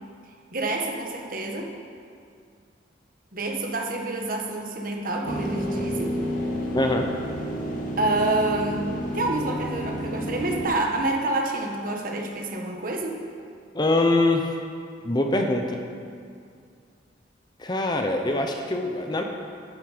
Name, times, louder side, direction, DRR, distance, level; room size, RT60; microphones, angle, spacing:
voice 1, 0.5-1.7 3.3-6.2 8.0-13.2, right 2 dB, 50° right, 1 dB, 1.4 m, -28 dB
sound 1, 5.2-10.7, equal, 45° left, 1.9 m, -30 dB
voice 2, 6.7-7.1 13.7-14.5 15.0-15.8 17.6-19.2, left 2 dB, 25° left, 3 dB, 0.8 m, -23 dB
13.0 x 9.1 x 5.1 m, 2.3 s
head